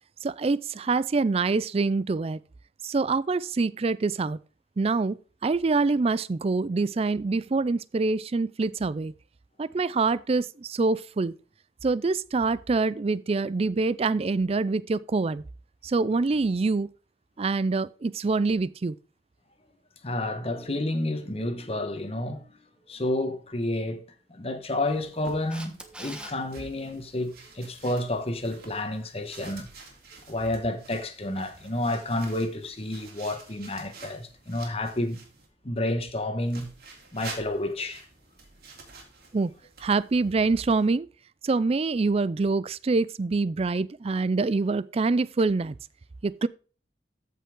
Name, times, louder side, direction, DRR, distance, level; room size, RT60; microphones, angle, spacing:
voice 1, 0.2-2.4 2.8-4.4 4.8-5.2 5.4-9.1 9.6-11.3 11.8-15.4 15.8-16.9 17.4-19.0 39.3-39.5 39.8-41.1 41.4-45.8 46.2-46.5, right 3 dB, 35° right, 0.4 m, -25 dB
voice 2, 20.0-22.5 22.9-24.0 24.3-29.7 30.3-35.2 35.6-36.7 37.1-38.0, left 1 dB, 35° left, 1.3 m, -30 dB
sound 1, 24.8-35.5 36.5-40.9, right 4 dB, 60° right, 3.3 m, -49 dB
Camera, 25.5-26.3 33.0-33.1, right 1 dB, 5° right, 1.2 m, -41 dB
14.0 x 5.5 x 3.7 m
head